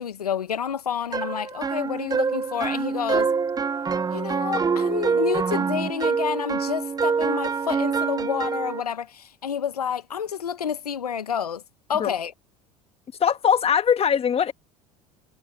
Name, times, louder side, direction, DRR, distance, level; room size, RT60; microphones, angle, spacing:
voice 1, 0.0-3.3 4.1-11.6 11.9-12.3, left 8 dB, 90° left, 1.5 m, -29 dB
sound 1, 1.1-8.8, right 5 dB, 20° right, 0.8 m, -25 dB
voice 2, 13.2-14.5, left 7 dB, 30° left, 1.7 m, -21 dB
hypercardioid pair, 75°, 19 cm